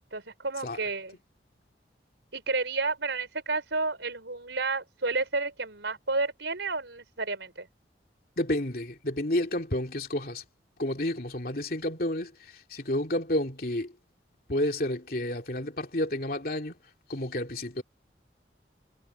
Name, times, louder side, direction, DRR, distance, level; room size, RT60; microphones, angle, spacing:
voice 1, 0.1-1.1 2.3-7.7, right 3 dB, 85° right, 4.8 m, -31 dB
voice 2, 8.4-10.4 10.8-12.3 12.7-13.9 14.5-16.7 17.1-17.8, left 1 dB, 55° left, 2.8 m, -30 dB
head